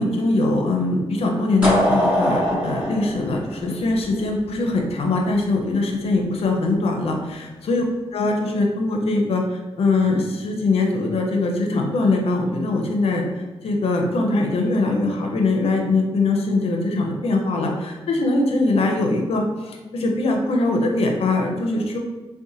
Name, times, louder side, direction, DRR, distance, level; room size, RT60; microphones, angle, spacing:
voice 1, 0.0-7.8 8.1-9.4 9.8-13.3 13.6-22.0, left 2 dB, 65° left, 2 dB, 0.5 m, -22 dB
sound 1, 1.6-4.5, equal, 15° right, 0.9 m, -22 dB
2.8 x 2.1 x 2.6 m, 1.2 s
cardioid pair, 75°, 11 cm